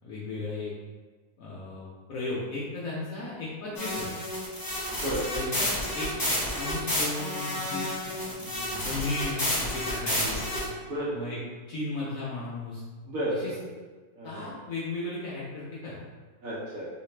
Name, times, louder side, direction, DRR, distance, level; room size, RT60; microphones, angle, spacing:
voice 1, 0.0-0.7 1.4-4.2 5.3-5.7 5.9-6.1 6.5-10.5 11.1-11.4 11.7-12.8 13.3-13.5 14.2-16.0, left 2 dB, 65° left, -7 dB, 0.9 m, -35 dB
sound 1, 3.7-10.6, left 1 dB, 30° left, 0.3 m, -30 dB
voice 2, 4.9-5.2 10.8-11.1 13.0-13.6 14.2-14.6 16.4-16.8, right 1 dB, 55° right, -7 dB, 1.1 m, -32 dB
3.2 x 2.8 x 3.2 m, 1.4 s
omnidirectional pair, 1.9 m